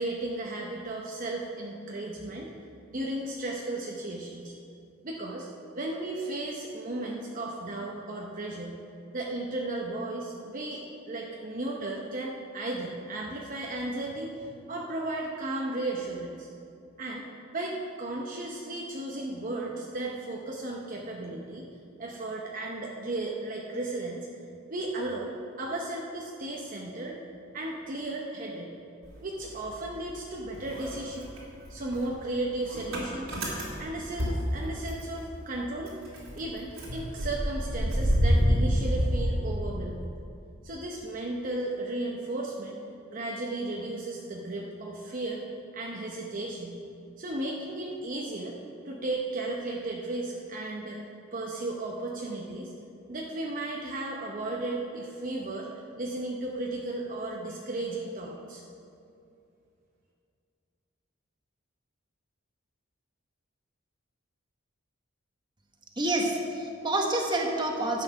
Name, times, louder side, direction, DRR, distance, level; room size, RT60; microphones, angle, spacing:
voice 1, 0.0-2.5 2.9-4.6 5.0-5.5 5.7-8.8 9.1-16.5 17.0-17.3 17.5-21.6 22.0-24.3 24.7-27.2 27.5-28.7 29.2-33.4 33.8-35.9 36.3-40.1 40.6-42.8 43.1-45.4 45.7-46.8 47.2-48.6 48.8-51.0 51.3-52.7 53.1-55.7 56.0-58.6, right 2 dB, 40° right, -2 dB, 0.8 m, -35 dB
Motor vehicle (road) / Engine starting, 29.0-30.3 30.5-35.2 35.5-35.6 35.9-40.0, equal, 90° right, 3.2 m, -28 dB
voice 2, 66.0-68.0, right 1 dB, 20° right, 1 dB, 1.2 m, -28 dB
11.5 x 7.9 x 5.8 m, 2.6 s
head